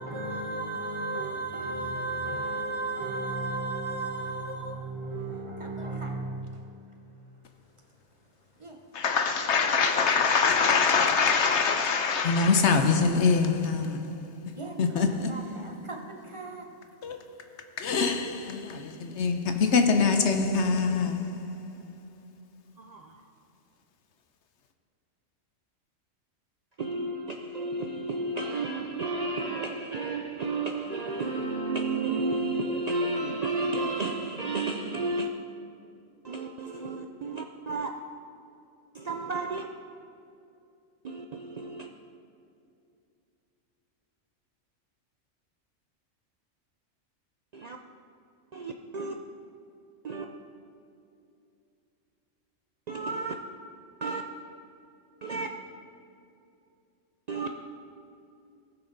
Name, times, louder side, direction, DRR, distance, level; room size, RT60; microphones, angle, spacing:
voice 1, 0.0-6.8 8.6-8.9 14.5-16.7, right 2 dB, 25° right, 0.9 m, -34 dB
voice 2, 8.9-14.1 14.8-15.6 17.0-17.2 17.8-21.6, left 5 dB, 65° left, 1.0 m, -24 dB
voice 3, 22.8-23.2 26.8-35.3 36.2-37.9 38.9-39.7 41.0-41.9 47.5-47.8 48.5-49.2 50.0-50.3 52.9-53.3 54.0-54.2 55.2-55.5 57.3-57.5, right 3 dB, 85° right, 0.3 m, -32 dB
18.0 x 6.2 x 3.9 m
omnidirectional pair, 1.4 m